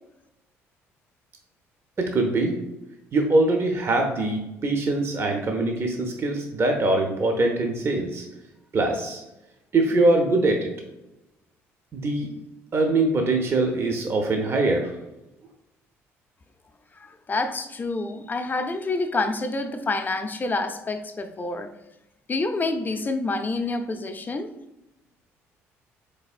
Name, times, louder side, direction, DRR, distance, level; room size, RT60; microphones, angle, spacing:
voice 1, 2.0-2.6 3.1-8.2 8.7-9.2 9.7-10.7 11.9-12.3 12.7-14.9, right 2 dB, 35° right, 3 dB, 0.6 m, -23 dB
voice 2, 17.0-21.7 22.3-24.5, left 3 dB, 25° left, 8 dB, 0.4 m, -28 dB
4.0 x 3.3 x 2.5 m, 0.93 s
hypercardioid pair, 50°, 7 cm